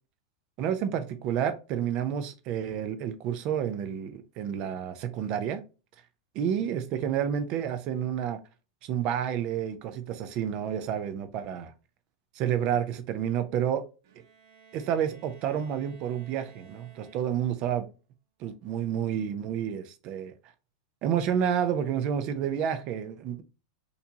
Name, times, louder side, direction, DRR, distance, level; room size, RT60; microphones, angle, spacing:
voice 1, 0.6-5.6 6.4-8.4 8.8-11.7 12.4-13.8 14.7-17.9 18.4-20.3 21.0-23.4, right 9 dB, 40° right, 0.5 m, -30 dB
Bowed string instrument, 14.0-17.7, right 6 dB, 65° right, 0.8 m, -56 dB
4.3 x 2.6 x 2.8 m
supercardioid pair, 140°, 2 cm